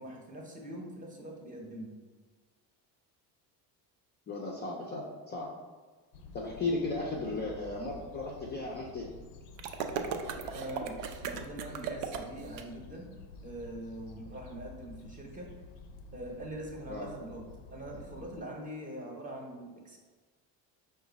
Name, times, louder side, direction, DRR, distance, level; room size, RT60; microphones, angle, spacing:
voice 1, 0.0-1.9 10.5-13.2 13.4-15.5 16.1-17.4 17.7-20.0, right 1 dB, 20° right, -1 dB, 0.7 m, -43 dB
voice 2, 4.3-5.5 6.3-9.1 16.9-17.1, left 2 dB, 25° left, -2 dB, 0.4 m, -35 dB
sound 1, 6.1-18.4, left 3 dB, 75° left, 0.5 m, -50 dB
sound 2, 9.6-12.6, right 6 dB, 80° right, 0.6 m, -36 dB
5.0 x 2.3 x 3.9 m, 1.4 s
cardioid pair, 145°, 43 cm